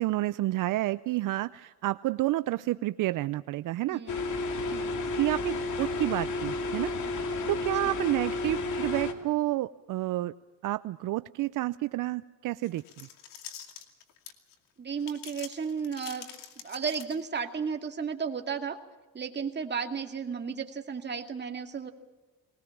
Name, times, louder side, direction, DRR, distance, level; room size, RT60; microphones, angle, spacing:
voice 1, 0.0-4.0 5.2-6.9 7.5-10.3 10.6-13.1, right 17 dB, 75° right, 14 dB, 0.6 m, -30 dB
voice 2, 3.9-4.3 4.7-5.0 7.8-7.9 14.8-16.3 16.6-18.8 19.1-21.9, right 6 dB, 35° right, 4 dB, 2.3 m, -34 dB
sound 1, 4.1-9.1, left 2 dB, 65° left, 2.5 m, -32 dB
sound 2, 12.6-14.6 15.0-17.4, left 8 dB, 80° left, 2.5 m, -45 dB
21.5 x 19.5 x 7.2 m, 1.2 s
cardioid pair, 110°, 32 cm